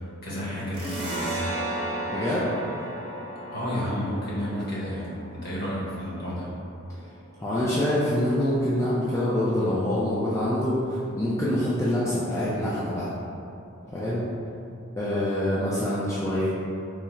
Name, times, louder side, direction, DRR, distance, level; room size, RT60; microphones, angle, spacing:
voice 1, 0.2-1.4 3.5-6.5 12.2-12.4, equal, 50° left, -8 dB, 1.1 m, -31 dB
sound 1, 0.7-7.9, right 1 dB, 25° right, 0.8 m, -35 dB
voice 2, 2.1-2.5 7.4-13.1 13.9-14.2 15.0-16.5, left 1 dB, 15° left, -9 dB, 0.4 m, -25 dB
3.6 x 2.0 x 4.3 m, 2.6 s
head